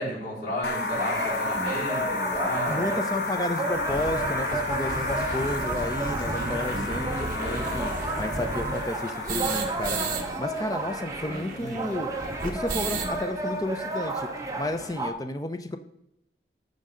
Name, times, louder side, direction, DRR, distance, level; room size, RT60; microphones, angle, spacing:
voice 1, 0.0-3.2 6.2-6.9 7.2-7.8 11.2-11.8, left 1 dB, 50° left, -13 dB, 4.1 m, -33 dB
sound 1, 0.6-10.4, left 2 dB, 70° left, 1.6 m, -32 dB
sound 2, 0.9-15.1, right 2 dB, 20° right, 0.9 m, -33 dB
sound 3, 1.5-1.6 2.3-2.4 2.7-2.8 3.1-3.2 3.5-10.2 10.5-10.6 10.8-13.2, right 3 dB, 50° right, 1.1 m, -34 dB
voice 2, 2.7-7.9 8.2-12.1 12.4-14.3 14.6-15.8, left 1 dB, 20° left, 8 dB, 0.5 m, -32 dB
14.0 x 5.3 x 3.8 m, 0.84 s
head